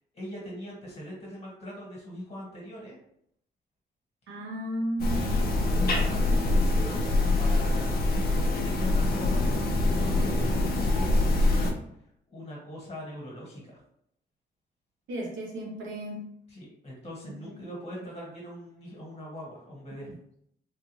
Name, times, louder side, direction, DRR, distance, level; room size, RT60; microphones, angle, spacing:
voice 1, 0.1-3.0 5.1-7.0 7.4-11.7 12.3-13.8 16.5-20.1, equal, 35° left, -3 dB, 1.4 m, -41 dB
voice 2, 4.3-5.4 15.1-16.3 17.2-17.5, right 1 dB, 85° right, -3 dB, 1.1 m, -34 dB
sound 1, 5.0-11.7, left 2 dB, 55° left, 0.6 m, -24 dB
3.4 x 2.4 x 3.1 m, 0.71 s
cardioid pair, 150°, 19 cm